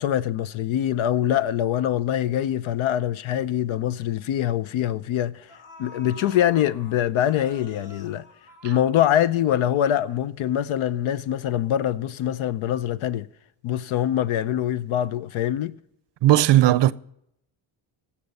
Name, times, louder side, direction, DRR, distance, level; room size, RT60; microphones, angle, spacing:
voice 1, 0.0-5.5 5.8-8.2 8.6-13.3 13.6-15.8, left 11 dB, 75° left, 0.6 m, -24 dB
sound 1, 5.5-9.4 9.7-9.8, left 2 dB, 40° left, 2.0 m, -47 dB
voice 2, 16.2-16.9, right 14 dB, 60° right, 0.6 m, -16 dB
16.5 x 6.9 x 5.3 m
supercardioid pair, 65°, 50 cm